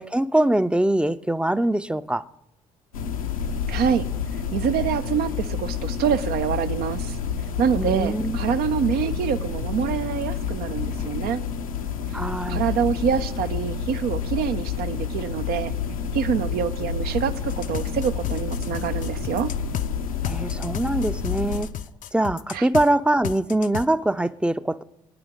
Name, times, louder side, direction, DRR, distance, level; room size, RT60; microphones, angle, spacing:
voice 1, 0.0-2.2 7.8-8.5 12.1-12.6 20.3-21.7 22.1-24.8, right 1 dB, 5° right, 0.6 m, -23 dB
sound 1, 2.9-21.6, left 6 dB, 90° left, 0.9 m, -29 dB
voice 2, 3.7-4.1 4.5-7.2 7.6-11.4 12.1-12.2 12.5-15.7 16.1-19.5 22.5-22.7, right 8 dB, 60° right, 0.9 m, -26 dB
sound 2, 17.5-19.9 20.2-22.9 23.2-23.8, left 10 dB, 50° left, 0.6 m, -33 dB
27.0 x 9.5 x 3.7 m
hypercardioid pair, 50°, 18 cm